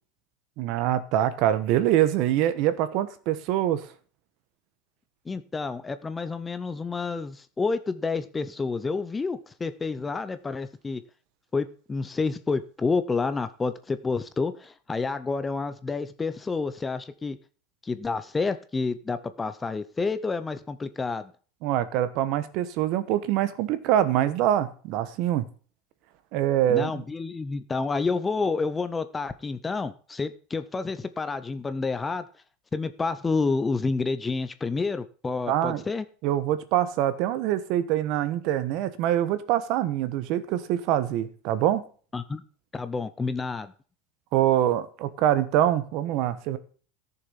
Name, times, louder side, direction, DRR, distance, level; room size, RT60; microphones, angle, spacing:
voice 1, 0.6-3.8 21.6-25.4 26.3-27.0 35.5-35.8 36.2-41.8 44.3-46.6, right 12 dB, 45° right, 1.2 m, -24 dB
voice 2, 5.3-11.0 11.5-17.4 17.8-21.3 26.7-32.2 32.7-36.1 42.1-42.4 42.7-43.7, left 4 dB, 10° left, 0.5 m, -29 dB
14.0 x 6.8 x 5.7 m
supercardioid pair, 170°, 0 cm